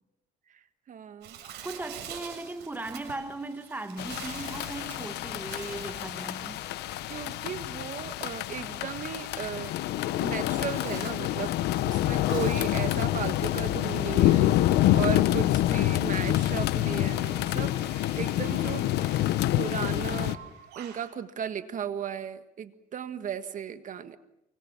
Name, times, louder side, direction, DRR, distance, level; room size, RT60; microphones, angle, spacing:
voice 1, 0.5-1.4 7.1-9.7 10.2-14.7 14.9-20.4 20.8-24.2, right 8 dB, 50° right, 1.6 m, -36 dB
Bird, 1.2-21.1, right 9 dB, 80° right, 7.2 m, -49 dB
voice 2, 1.6-6.6, right 2 dB, 10° right, 1.8 m, -38 dB
sound 1, 4.0-20.4, left 14 dB, 80° left, 1.2 m, -27 dB
29.0 x 24.5 x 7.2 m
cardioid pair, 110°, 17 cm